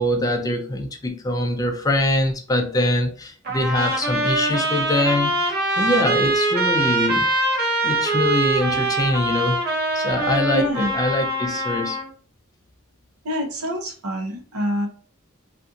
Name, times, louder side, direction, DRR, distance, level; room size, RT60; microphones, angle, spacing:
voice 1, 0.0-5.3 5.8-7.3 7.8-9.6 9.9-12.0, left 1 dB, 15° left, 0.3 m, -23 dB
Trumpet, 3.5-12.1, right 2 dB, 50° right, 0.8 m, -23 dB
voice 2, 10.5-11.0 13.2-14.9, equal, 90° right, 0.8 m, -26 dB
2.6 x 2.5 x 2.4 m
head